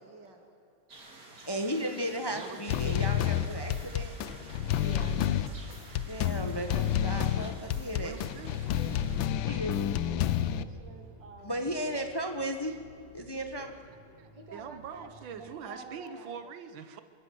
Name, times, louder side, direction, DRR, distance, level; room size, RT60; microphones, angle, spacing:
voice 1, 0.0-0.5 4.7-5.3 10.5-12.1 14.3-16.5, right 3 dB, 65° right, 3 dB, 3.3 m, -49 dB
sound 1, 0.9-9.2, right 2 dB, 50° right, 3.0 m, -51 dB
voice 2, 1.5-4.1 6.0-8.1 8.9-9.1 9.4-9.8 11.4-12.8 13.1-13.8, equal, 15° left, 5 dB, 1.0 m, -35 dB
voice 3, 2.3-3.0 7.9-8.7 10.6-10.7 14.2-17.0, right 7 dB, 85° right, 10 dB, 1.8 m, -44 dB
sound 2, 2.7-10.6, left 10 dB, 90° left, 1.5 m, -29 dB
sound 3, 3.0-15.5, right 2 dB, 60° left, 7.6 m, -56 dB
25.5 x 14.0 x 7.9 m, 2.6 s
omnidirectional pair, 2.1 m